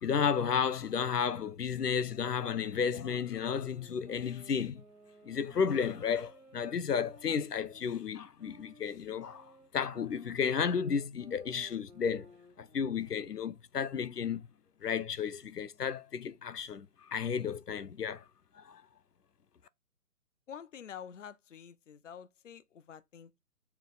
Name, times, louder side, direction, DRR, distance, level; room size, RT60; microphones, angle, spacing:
voice 1, 0.0-4.8 5.3-9.5 9.7-12.3 12.6-14.5 14.8-18.2 18.6-18.8, left 7 dB, 85° left, 0.9 m, -33 dB
sound 1, 2.5-7.9 8.4-13.3, equal, ahead, 0.6 m, -58 dB
voice 2, 20.5-23.4, left 8 dB, 50° left, 0.8 m, -48 dB
7.3 x 4.5 x 3.9 m
hypercardioid pair, 160°, 46 cm